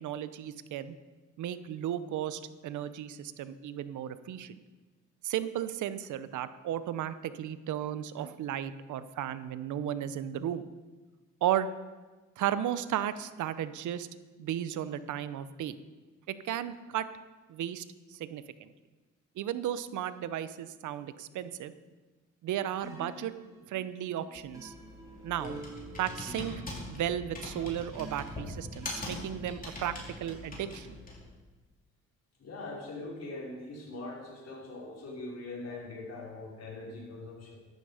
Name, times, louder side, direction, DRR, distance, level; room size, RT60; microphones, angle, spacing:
voice 1, 0.0-0.9 1.4-4.6 5.2-10.6 11.4-11.7 12.4-14.1 14.4-15.8 16.3-17.1 17.5-17.8 18.1-18.7 19.4-21.7 22.4-23.3 23.7-24.7 25.2-25.6 26.0-26.5 26.9-30.9, right 11 dB, 75° right, 13 dB, 0.8 m, -34 dB
sound 1, 22.8-29.7, right 2 dB, 10° right, 2.9 m, -49 dB
Computer keyboard, 24.3-31.3, left 2 dB, 30° left, 4.8 m, -42 dB
voice 2, 32.4-37.5, left 2 dB, 55° left, -3 dB, 4.9 m, -42 dB
14.0 x 12.0 x 5.0 m, 1.2 s
cardioid pair, 90°, 30 cm